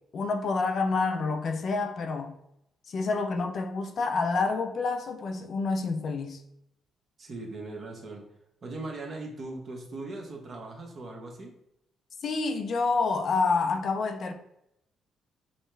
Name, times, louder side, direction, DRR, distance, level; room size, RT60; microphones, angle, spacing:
voice 1, 0.1-2.3 2.9-6.4 12.2-14.3, left 4 dB, 55° left, 0.5 m, -28 dB
voice 2, 7.2-8.2 8.6-11.5, right 2 dB, 45° right, 1.1 m, -39 dB
5.3 x 2.2 x 3.2 m
cardioid pair, 90°, 0 cm